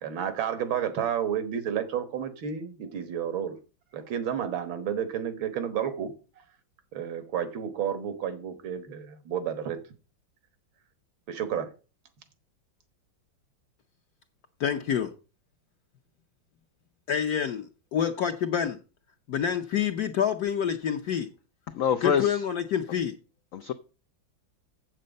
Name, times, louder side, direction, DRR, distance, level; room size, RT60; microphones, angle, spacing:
voice 1, 0.0-3.6 3.9-6.1 6.9-9.8 11.3-11.7, right 8 dB, 85° right, 10 dB, 2.1 m, -31 dB
voice 2, 14.6-15.1 17.1-18.8 19.3-21.3 22.0-23.1, left 8 dB, 60° left, 4 dB, 1.1 m, -27 dB
voice 3, 21.7-22.4 23.5-23.7, left 8 dB, 90° left, 11 dB, 0.7 m, -25 dB
7.7 x 7.6 x 5.2 m, 0.34 s
omnidirectional pair, 2.1 m